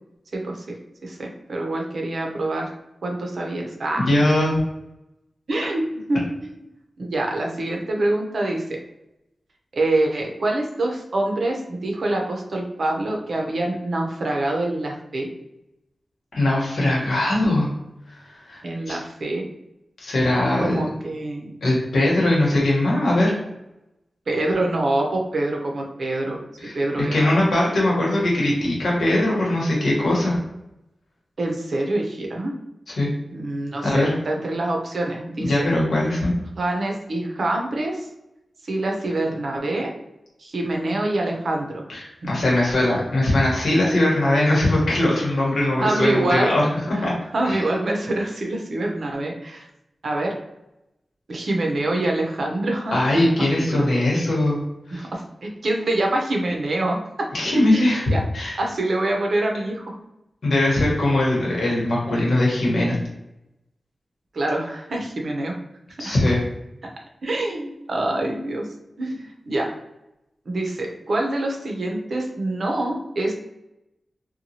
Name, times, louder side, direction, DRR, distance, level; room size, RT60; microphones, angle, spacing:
voice 1, 0.3-0.7 1.0-2.7 3.0-4.1 5.5-5.8 6.1-6.5 7.0-8.8 9.7-15.3 18.6-19.4 20.6-21.6 24.3-26.4 26.7-27.4 31.4-32.5 33.3-35.7 36.6-38.0 38.6-39.9 40.4-41.8 45.8-46.6 46.9-47.1 47.3-49.7 50.0-50.3 51.3-53.2 53.5-54.0 54.9-57.3 57.7-58.2 58.6-59.9 62.1-62.2 64.3-65.5 66.0-66.1 67.2-68.7 69.0-69.7 70.5-73.3, right 2 dB, 65° right, 0 dB, 0.6 m, -25 dB
voice 2, 3.9-4.6 16.3-17.7 18.2-18.6 18.9-19.0 20.0-20.8 21.6-23.3 26.6-26.8 27.1-30.4 32.9-33.1 33.8-34.1 35.4-36.3 41.9-47.1 47.4-47.6 52.9-55.1 57.3-58.6 60.4-62.9 66.0-66.4, left 1 dB, 90° left, -4 dB, 1.0 m, -20 dB
2.9 x 2.2 x 2.7 m, 0.89 s
wide cardioid pair, 115°, 0 cm